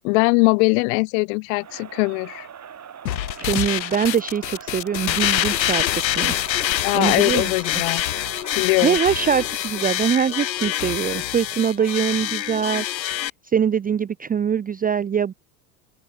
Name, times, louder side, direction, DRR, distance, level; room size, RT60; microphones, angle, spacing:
voice 1, 0.0-2.5 6.8-8.0 8.5-9.0, left 31 dB, 55° left, 0.5 m, -21 dB
Crowd, 1.6-9.7, right 8 dB, 35° right, 6.4 m, -42 dB
sound 1, 3.1-13.3, left 13 dB, 85° left, 1.1 m, -25 dB
voice 2, 3.4-6.4 6.9-7.8 8.8-12.8 13.4-15.3, right 8 dB, 15° right, 0.6 m, -23 dB
open air
hypercardioid pair, 80°, 50 cm